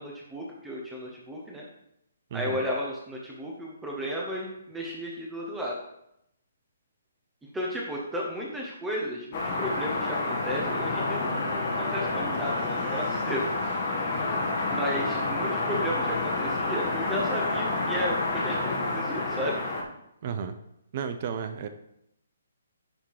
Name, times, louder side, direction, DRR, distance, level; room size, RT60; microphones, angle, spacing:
voice 1, 0.0-1.7 2.3-5.7 7.5-13.5 14.7-19.6, equal, 10° right, -4 dB, 1.3 m, -34 dB
voice 2, 2.3-2.7 20.2-20.6 20.9-21.7, right 7 dB, 45° right, 9 dB, 0.6 m, -33 dB
sound 1, 9.3-19.8, left 2 dB, 45° left, 1.6 m, -29 dB
10.0 x 3.7 x 4.8 m, 0.79 s
figure-of-eight pair, 140°, 0 cm